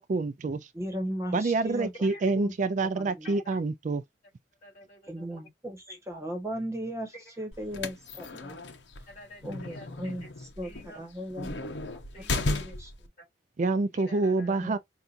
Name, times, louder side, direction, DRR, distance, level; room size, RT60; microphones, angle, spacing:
voice 1, 0.0-0.6 1.3-4.0 13.6-14.8, right 3 dB, 45° right, 0.4 m, -27 dB
voice 2, 0.7-1.9 2.3-2.5 2.8-3.3 5.1-8.6 9.4-11.7 12.5-12.9 14.4-14.8, equal, 15° right, 1.2 m, -37 dB
voice 3, 3.2-3.6 4.6-5.4 5.9-6.0 7.1-7.5 9.1-10.3 10.6-11.0 12.1-12.8 13.2-13.3 13.9-14.8, equal, 40° left, 3.4 m, -50 dB
sound 1, 7.5-13.1, left 2 dB, 75° left, 0.7 m, -35 dB
5.6 x 2.4 x 2.5 m
head